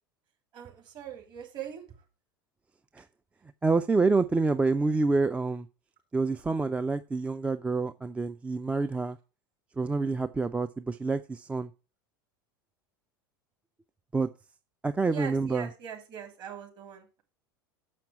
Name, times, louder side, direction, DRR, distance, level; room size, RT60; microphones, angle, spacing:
voice 1, 0.5-1.8 15.0-17.2, right 9 dB, 40° right, 3.2 m, -41 dB
voice 2, 3.6-5.7 6.1-9.2 9.8-11.7 14.1-14.3 14.8-15.7, right 3 dB, 10° right, 0.4 m, -27 dB
7.2 x 5.9 x 7.2 m
figure-of-eight pair, 75°, 12 cm